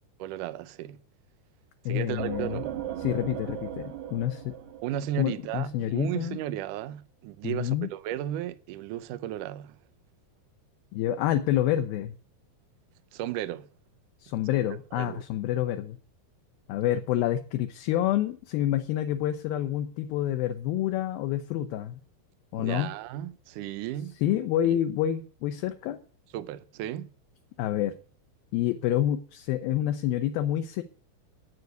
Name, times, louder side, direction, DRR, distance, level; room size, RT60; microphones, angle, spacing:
voice 1, 0.2-1.0 1.9-2.8 4.8-9.8 13.1-13.7 14.9-15.2 22.6-24.2 24.7-24.8 26.3-27.1, right 12 dB, 90° right, 1.8 m, -34 dB
voice 2, 1.9-2.6 3.0-4.5 5.2-6.4 7.4-7.9 10.9-12.1 14.2-16.0 16.7-22.0 22.5-22.9 24.2-26.0 27.6-27.9 28.5-30.8, left 12 dB, 75° left, 2.5 m, -28 dB
sound 1, 2.2-5.8, right 10 dB, 70° right, 1.7 m, -37 dB
9.3 x 8.3 x 9.3 m
omnidirectional pair, 4.6 m